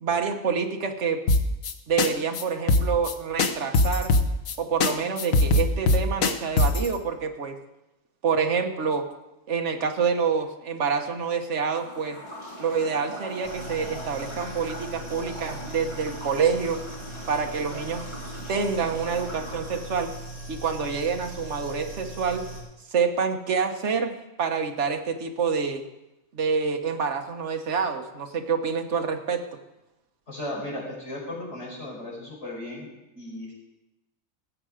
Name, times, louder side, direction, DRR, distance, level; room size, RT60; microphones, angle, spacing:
voice 1, 0.0-1.2 1.9-4.1 4.6-7.6 8.2-9.1 9.5-12.2 12.6-16.8 17.3-18.1 18.5-20.1 20.5-22.5 22.9-25.8 26.3-29.4, right 5 dB, 60° right, 4 dB, 1.4 m, -27 dB
sound 1, 1.3-1.7 2.0-2.1 2.3-2.4 2.7-4.5 4.8-4.9 5.2-6.9, left 2 dB, 85° left, 1.4 m, -20 dB
sound 2, 11.5-20.2, equal, 20° left, 2.4 m, -41 dB
sound 3, 13.4-22.6, right 1 dB, 25° right, 2.9 m, -40 dB
voice 2, 30.3-32.9 33.1-33.5, left 1 dB, 55° left, -5 dB, 5.6 m, -35 dB
17.5 x 7.9 x 5.0 m, 0.95 s
omnidirectional pair, 1.4 m